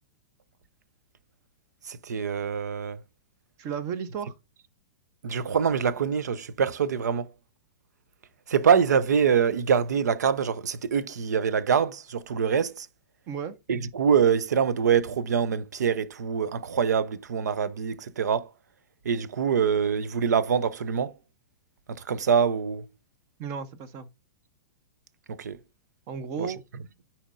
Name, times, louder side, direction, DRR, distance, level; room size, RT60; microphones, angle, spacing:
voice 1, 1.8-3.0 5.2-7.3 8.5-12.9 13.7-18.5 19.0-21.1 21.9-22.9 25.3-25.6 26.4-26.5, right 7 dB, 90° right, 0.6 m, -25 dB
voice 2, 3.6-4.3 13.3-13.6 23.4-24.1 26.1-26.6, right 7 dB, 35° right, 0.8 m, -34 dB
10.0 x 4.3 x 2.5 m
hypercardioid pair, 135°, 9 cm